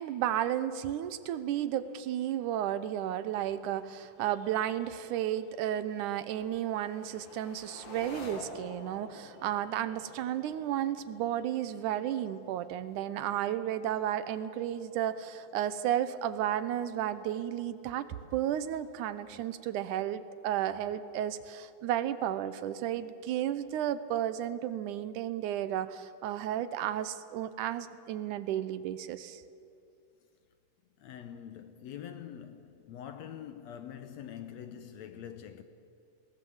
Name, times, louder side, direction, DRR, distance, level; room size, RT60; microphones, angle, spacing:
voice 1, 0.0-29.4, right 11 dB, 75° right, 2.2 m, -33 dB
sound 1, 1.1-19.9, left 3 dB, 55° left, 3.0 m, -53 dB
voice 2, 31.0-35.6, left 9 dB, 70° left, 1.8 m, -45 dB
21.0 x 18.5 x 7.9 m
omnidirectional pair, 3.7 m